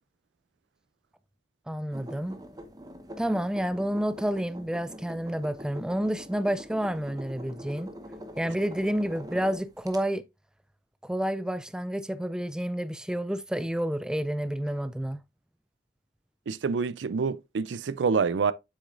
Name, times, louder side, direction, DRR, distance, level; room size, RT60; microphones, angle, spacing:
voice 1, 1.7-2.4 3.2-7.9 8.4-10.2 11.0-15.2, equal, 5° right, 0.3 m, -29 dB
sound 1, 1.9-10.0, equal, 20° right, 0.8 m, -44 dB
voice 2, 16.5-18.5, right 5 dB, 90° right, 0.4 m, -27 dB
7.8 x 6.2 x 2.5 m
head